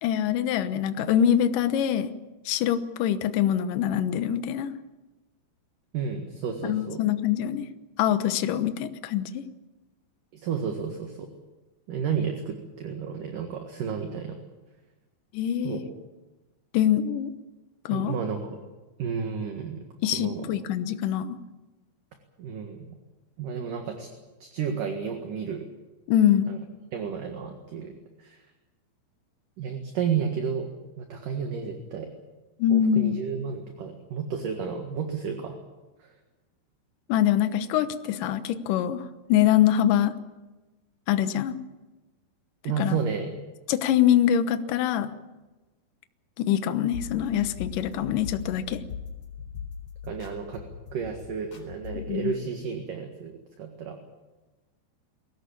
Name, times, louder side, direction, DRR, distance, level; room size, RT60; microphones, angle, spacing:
voice 1, 0.0-2.1 2.5-4.7 6.6-7.7 8.0-9.4 15.3-15.8 16.7-17.3 17.9-18.1 20.0-21.4 26.1-26.5 32.6-33.2 37.1-39.0 39.3-40.1 41.1-41.6 42.8-43.0 43.7-45.1 46.4-48.8 51.9-52.3, left 10 dB, 70° left, 10 dB, 2.1 m, -24 dB
voice 2, 5.9-7.0 10.3-11.3 11.9-14.4 15.6-15.9 17.9-18.6 19.0-19.8 20.1-20.5 22.4-22.9 23.4-24.1 24.4-25.7 26.5-26.6 26.9-27.9 28.2-28.4 29.6-30.7 31.0-32.1 32.7-35.6 36.0-36.1 42.6-43.3 50.0-50.6 50.9-54.0, right 6 dB, 55° right, 4 dB, 3.0 m, -32 dB
sound 1, 46.9-52.2, left 7 dB, 40° left, 4.9 m, -40 dB
23.0 x 18.0 x 8.6 m, 1.1 s
omnidirectional pair, 5.1 m